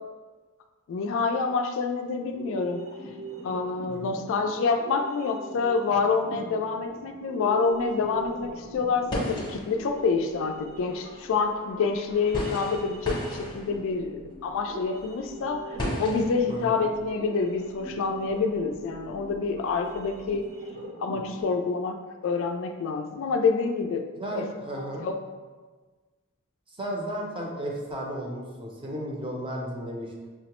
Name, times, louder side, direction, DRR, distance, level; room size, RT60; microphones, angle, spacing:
voice 1, 0.9-2.8 3.4-20.5 21.0-22.0 22.2-24.1 24.4-24.5 25.0-25.2, left 4 dB, 65° left, 4 dB, 0.3 m, -27 dB
sound 1, 2.1-21.4, right 2 dB, 70° right, 0.8 m, -42 dB
voice 2, 3.9-4.2 16.5-16.8 24.2-25.1 26.7-30.1, equal, 25° right, -1 dB, 0.6 m, -34 dB
sound 2, 7.8-7.9 8.1-20.4, equal, 20° left, 0.7 m, -37 dB
5.7 x 2.0 x 2.9 m, 1.4 s
head